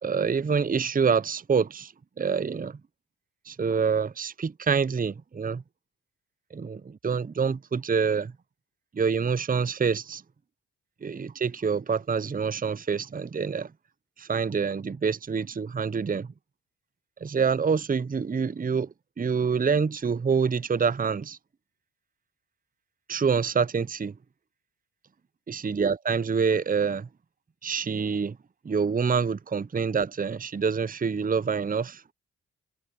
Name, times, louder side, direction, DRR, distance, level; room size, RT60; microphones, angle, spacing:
voice 1, 0.0-1.9 2.2-2.8 3.5-5.6 6.5-8.3 8.9-10.2 11.0-13.7 14.2-16.3 17.2-18.9 19.2-21.4 23.1-24.1 25.5-27.1 27.6-28.4 28.6-32.0, right 5 dB, 25° right, 0.7 m, -26 dB
supercardioid pair, 40°, 32 cm